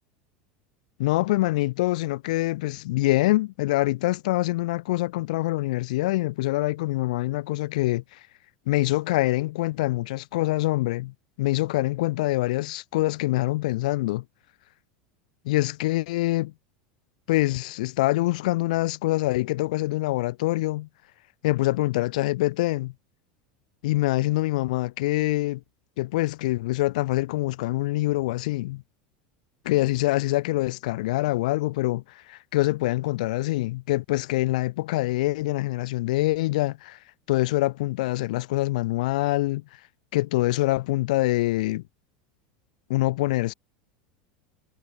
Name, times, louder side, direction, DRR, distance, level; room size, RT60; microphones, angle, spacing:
voice 1, 1.0-8.2 8.7-14.2 15.4-16.5 17.3-20.9 21.4-22.9 23.8-25.6 26.0-28.8 29.7-32.0 32.3-37.0 37.3-39.6 40.1-41.8 42.9-43.5, left 18 dB, 75° left, 3.3 m, -25 dB
supercardioid pair, 120°, 4 cm